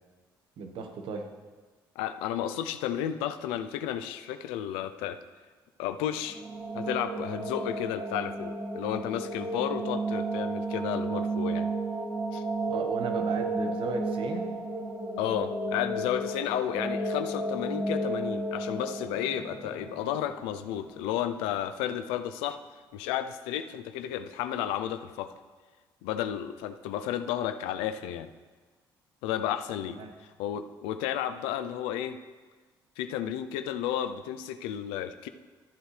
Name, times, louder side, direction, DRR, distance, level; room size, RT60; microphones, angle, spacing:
voice 1, 0.6-1.3 12.7-14.5 29.9-30.1, right 4 dB, 70° right, 5 dB, 1.2 m, -35 dB
voice 2, 2.0-5.2 5.8-6.4 6.7-11.7 12.3-12.4 15.2-22.6 22.9-25.3 26.0-28.3 29.2-30.0 30.4-32.2 33.0-35.3, left 10 dB, 90° left, 10 dB, 0.5 m, -32 dB
sound 1, 6.1-21.1, right 2 dB, 20° right, 2.4 m, -33 dB
13.5 x 7.9 x 3.3 m, 1.4 s
supercardioid pair, 70°, 9 cm